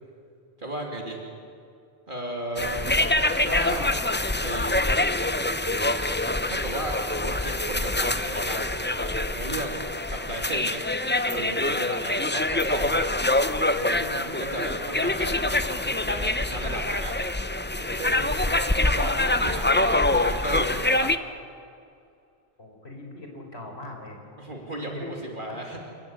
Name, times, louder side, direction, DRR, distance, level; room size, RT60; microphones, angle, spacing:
voice 1, 0.6-1.2 2.1-4.0 4.4-4.9 6.4-10.8 11.3-13.1 13.7-17.1 17.8-21.2 24.4-25.8, right 1 dB, 50° right, 0 dB, 2.9 m, -35 dB
sound 1, 2.6-21.2, left 2 dB, 15° left, 0.6 m, -25 dB
voice 2, 22.6-24.2 24.8-25.2 25.5-25.6, left 2 dB, 80° left, 2 dB, 4.6 m, -41 dB
29.0 x 15.0 x 9.5 m, 2.4 s
omnidirectional pair, 1.1 m